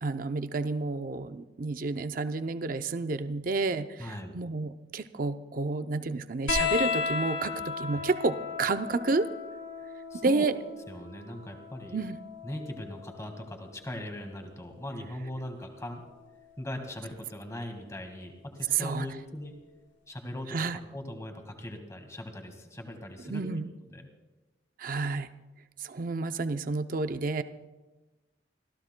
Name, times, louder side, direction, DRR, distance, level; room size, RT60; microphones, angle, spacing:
voice 1, 0.0-9.3 10.2-10.5 11.9-12.2 18.7-19.1 20.5-20.8 23.3-23.7 24.8-25.3 25.8-27.4, right 3 dB, 50° right, 10 dB, 0.5 m, -30 dB
voice 2, 4.0-4.3 7.9-8.0 10.1-10.5 10.9-12.0 12.4-16.0 16.6-19.6 20.1-23.4 23.9-24.1, left 1 dB, 15° left, 4 dB, 1.7 m, -40 dB
sound 1, 6.5-13.6 14.9-15.7 17.0-17.1, left 5 dB, 85° left, 4.0 m, -35 dB
29.5 x 14.5 x 2.2 m, 1.2 s
head